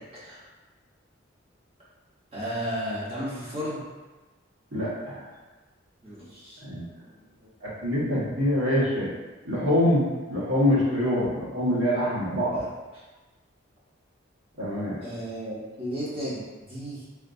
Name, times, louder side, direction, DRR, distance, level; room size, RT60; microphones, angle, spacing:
voice 1, 2.3-3.8 6.0-6.6 12.5-12.7 15.0-17.0, equal, 30° right, -9 dB, 0.8 m, -34 dB
voice 2, 4.7-5.2 6.6-6.9 7.6-9.1 9.4-12.6 14.6-15.0, left 1 dB, 85° right, -9 dB, 1.4 m, -25 dB
3.5 x 2.5 x 2.6 m, 1.2 s
head